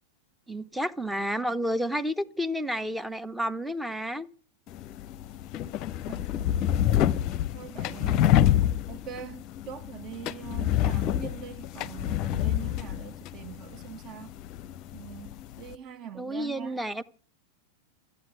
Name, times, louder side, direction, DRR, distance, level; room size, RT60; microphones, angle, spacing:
voice 1, 0.5-4.3 16.2-17.0, equal, 5° right, 0.9 m, -30 dB
sound 1, 4.7-15.8, left 12 dB, 40° left, 0.7 m, -28 dB
voice 2, 6.1-7.2 7.5-8.5 8.9-14.4 14.9-16.8, right 8 dB, 35° right, 1.2 m, -43 dB
14.0 x 8.7 x 9.2 m
figure-of-eight pair, 90°, 0 cm